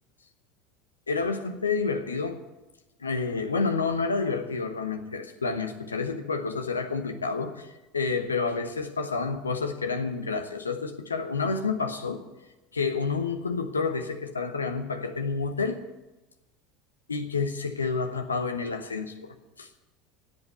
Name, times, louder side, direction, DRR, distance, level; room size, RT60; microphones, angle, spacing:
voice 1, 1.1-2.4 3.0-12.2 12.7-15.8 17.1-19.7, left 4 dB, 85° left, 8 dB, 1.1 m, -29 dB
16.0 x 8.6 x 8.0 m, 1.1 s
figure-of-eight pair, 75°, 0 cm